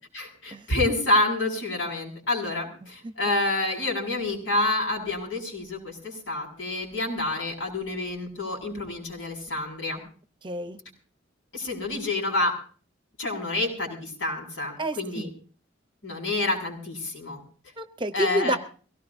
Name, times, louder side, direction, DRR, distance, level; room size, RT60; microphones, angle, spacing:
voice 1, 0.1-10.0 11.5-12.5 13.2-15.3 16.0-17.4 18.1-18.6, left 2 dB, 80° left, 1 dB, 6.6 m, -28 dB
voice 2, 10.4-10.8 14.8-15.3 17.8-18.6, equal, 25° right, 10 dB, 0.8 m, -28 dB
23.0 x 18.0 x 2.7 m, 0.40 s
head